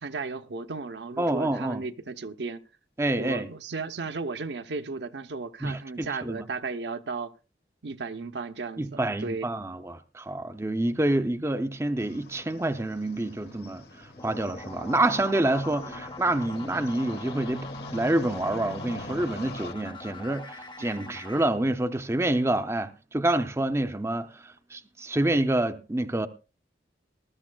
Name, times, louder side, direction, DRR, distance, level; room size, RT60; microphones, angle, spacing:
voice 1, 0.0-2.6 3.2-7.3 7.8-9.5 15.8-16.0 20.8-21.2, right 4 dB, 75° right, 0.8 m, -35 dB
voice 2, 1.2-1.8 3.0-3.5 5.6-6.5 8.8-13.8 14.2-17.7 17.9-26.3, right 1 dB, 15° right, 0.5 m, -27 dB
sound 1, 12.0-19.7, left 1 dB, 60° left, 1.3 m, -43 dB
sound 2, 14.2-21.4, left 3 dB, 25° left, 0.8 m, -42 dB
20.0 x 13.0 x 2.3 m
head